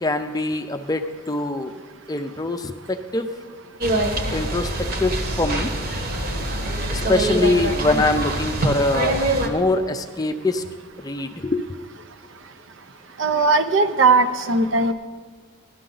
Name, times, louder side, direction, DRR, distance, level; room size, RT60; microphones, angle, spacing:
voice 1, 0.0-1.8 2.1-3.3 4.3-5.7 6.9-10.6 11.0-11.8, left 2 dB, 20° left, 7 dB, 0.5 m, -24 dB
sound 1, 3.8-9.5, right 1 dB, 45° right, 1.3 m, -24 dB
voice 2, 13.2-14.9, right 3 dB, 70° right, 9 dB, 0.7 m, -18 dB
16.5 x 12.0 x 3.9 m, 1.5 s
head